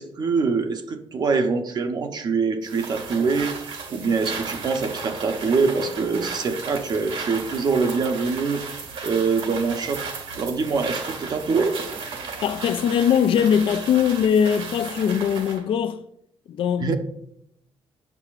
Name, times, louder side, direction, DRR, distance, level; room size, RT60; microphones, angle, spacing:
voice 1, 0.0-3.5 3.9-10.0 10.3-11.8 16.8-17.0, right 4 dB, 45° right, 0.7 m, -24 dB
sound 1, 2.6-15.6, right 4 dB, 75° right, 1.4 m, -35 dB
voice 2, 12.4-16.0 16.5-16.9, left 8 dB, 65° left, 0.4 m, -21 dB
8.2 x 6.7 x 2.4 m
cardioid pair, 130°, 10 cm